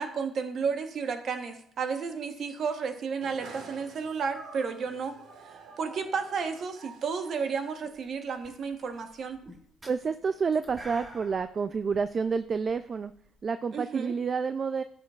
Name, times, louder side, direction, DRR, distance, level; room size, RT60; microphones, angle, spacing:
voice 1, 0.0-5.2 5.8-9.4 13.7-14.1, right 5 dB, 55° right, 7 dB, 1.0 m, -32 dB
sound 1, 3.2-8.1, right 5 dB, 75° right, 1.5 m, -49 dB
sound 2, 7.8-8.1 8.4-13.4, right 1 dB, 25° right, 1.7 m, -49 dB
voice 2, 9.9-13.1 13.4-14.8, right 5 dB, 40° right, 11 dB, 0.3 m, -29 dB
11.0 x 7.4 x 2.4 m, 0.68 s
cardioid pair, 95°, 0 cm